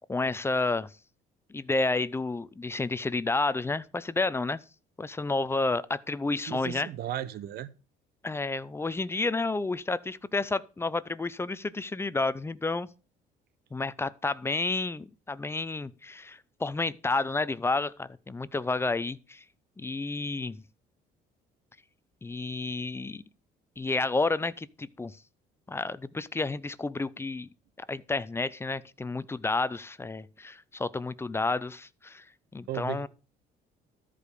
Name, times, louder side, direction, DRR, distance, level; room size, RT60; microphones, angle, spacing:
voice 1, 0.1-0.9 1.5-4.6 5.0-6.9 8.2-12.9 13.7-19.4 19.8-20.6 22.2-23.2 23.8-25.2 25.7-27.5 27.8-32.2 32.5-33.1, left 3 dB, 15° left, 0.6 m, -30 dB
voice 2, 6.5-7.7 32.7-33.1, right 12 dB, 70° right, 0.9 m, -35 dB
13.5 x 5.0 x 6.7 m
cardioid pair, 110°, 17 cm